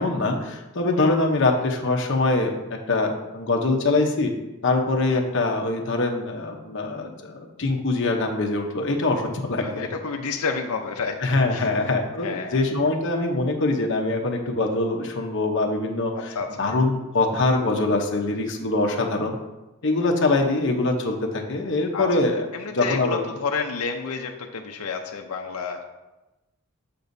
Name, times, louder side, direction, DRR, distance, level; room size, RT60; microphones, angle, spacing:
voice 1, 0.0-4.3 4.6-9.7 11.2-16.3 16.6-19.4 19.8-22.5 22.7-23.2, left 2 dB, 55° left, 2 dB, 0.9 m, -23 dB
voice 2, 9.6-11.2 11.5-11.9 12.2-12.6 16.1-16.7 21.9-22.1 22.5-25.9, left 5 dB, 85° left, 3 dB, 0.6 m, -30 dB
6.8 x 6.8 x 2.7 m, 1.0 s
head